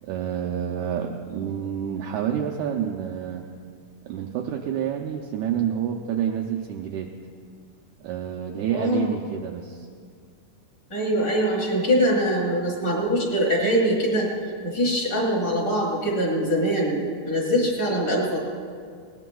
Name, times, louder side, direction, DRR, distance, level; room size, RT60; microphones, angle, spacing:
voice 1, 0.0-3.4 4.0-7.1 8.0-9.9, right 9 dB, 80° right, 2 dB, 1.7 m, -28 dB
voice 2, 8.7-9.1 10.9-14.3 14.6-17.0 17.2-18.4, equal, 25° left, -3 dB, 2.9 m, -23 dB
20.5 x 18.0 x 2.3 m, 2.1 s
omnidirectional pair, 4.1 m